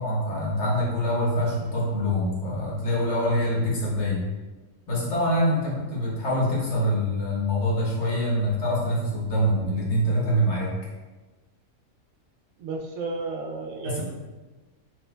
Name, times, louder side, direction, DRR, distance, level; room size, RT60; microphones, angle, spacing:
voice 1, 0.0-4.3 4.9-10.7 13.8-14.0, equal, 60° left, -5 dB, 1.3 m, -25 dB
voice 2, 12.6-14.0, right 3 dB, 85° right, 2 dB, 1.1 m, -32 dB
6.0 x 2.8 x 2.2 m, 1.2 s
omnidirectional pair, 1.4 m